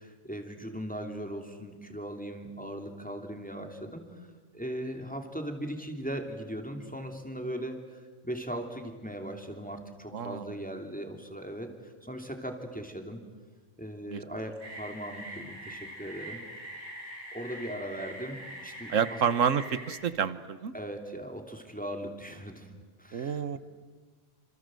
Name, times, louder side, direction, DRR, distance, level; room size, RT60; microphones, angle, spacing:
voice 1, 0.0-4.3 4.5-13.2 13.8-16.4 17.3-19.2 20.7-22.7 23.0-23.6, equal, 5° left, 4 dB, 2.8 m, -39 dB
voice 2, 10.1-10.6 14.1-14.2 18.9-20.7 23.1-23.6, right 7 dB, 65° right, 14 dB, 1.5 m, -29 dB
sound 1, 14.6-20.0, right 1 dB, 80° right, 8.2 m, -43 dB
28.5 x 27.0 x 7.7 m, 1.5 s
omnidirectional pair, 1.4 m